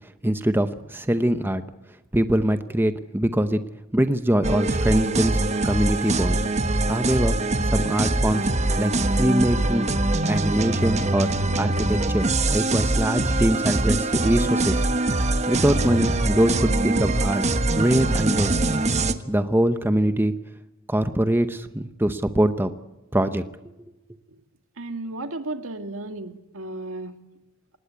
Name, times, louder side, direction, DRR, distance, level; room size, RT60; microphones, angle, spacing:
voice 1, 0.2-1.6 2.1-3.6 3.9-6.4 6.9-8.5 8.8-9.9 10.3-11.3 11.6-12.3 12.5-14.9 15.5-17.4 17.8-18.7 19.3-20.3 20.9-22.7 23.1-23.4, right 1 dB, 10° right, 10 dB, 0.8 m, -23 dB
sound 1, 4.4-19.1, right 2 dB, 30° right, 1.2 m, -23 dB
voice 2, 24.8-27.2, right 2 dB, 70° right, 7 dB, 2.1 m, -34 dB
27.0 x 19.0 x 8.4 m, 1.0 s
head